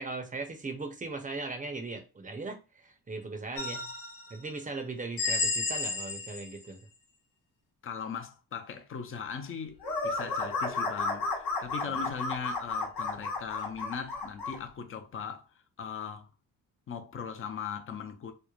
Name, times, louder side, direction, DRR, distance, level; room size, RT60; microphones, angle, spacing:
voice 1, 0.0-3.9 4.3-6.8 11.8-12.1, right 3 dB, 20° right, 0.6 m, -38 dB
sound 1, 3.6-4.4 5.2-6.6, left 3 dB, 85° left, 0.8 m, -32 dB
voice 2, 7.8-16.3 16.9-18.3, left 6 dB, 30° left, 0.5 m, -39 dB
sound 2, 9.8-14.6, left 3 dB, 60° left, 1.1 m, -32 dB
3.1 x 2.0 x 2.3 m
cardioid pair, 75°, 41 cm